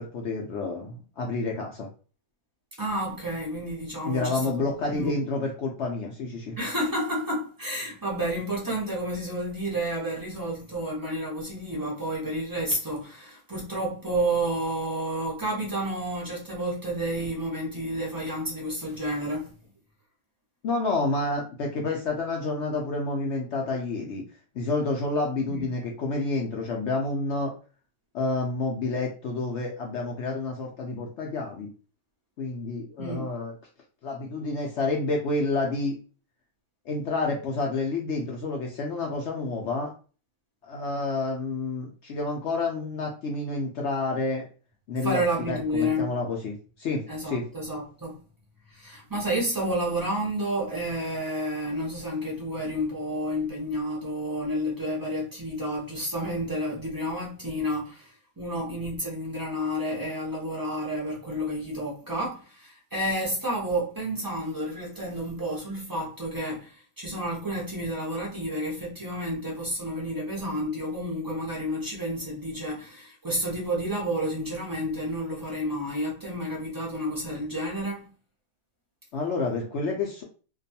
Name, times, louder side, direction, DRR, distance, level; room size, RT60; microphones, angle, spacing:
voice 1, 0.0-1.9 4.0-6.6 20.6-24.2 24.5-27.5 28.1-31.7 32.4-33.5 34.0-36.0 36.9-39.9 40.6-44.4 44.9-47.5 79.1-80.2, left 3 dB, 70° left, 0.7 m, -29 dB
voice 2, 2.8-5.2 6.6-19.5 25.5-25.7 33.0-33.3 45.0-46.1 47.1-48.2 48.7-78.1, equal, 25° right, 0.4 m, -30 dB
2.5 x 2.3 x 2.6 m
omnidirectional pair, 1.6 m